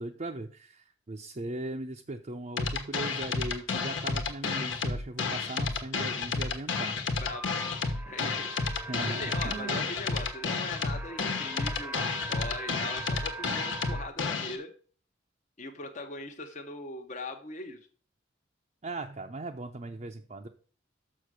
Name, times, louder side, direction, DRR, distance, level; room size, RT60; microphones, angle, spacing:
voice 1, 0.0-7.0 8.5-9.9 18.8-20.5, right 2 dB, 35° right, 3 dB, 0.6 m, -39 dB
sound 1, 2.6-14.6, left 4 dB, 75° left, 1.3 m, -31 dB
sound 2, 7.2-14.1, right 3 dB, 5° right, 0.8 m, -42 dB
voice 2, 8.1-8.5 9.0-14.7 15.6-17.8, left 2 dB, 40° left, 4 dB, 0.8 m, -40 dB
6.6 x 6.2 x 6.1 m, 0.43 s
head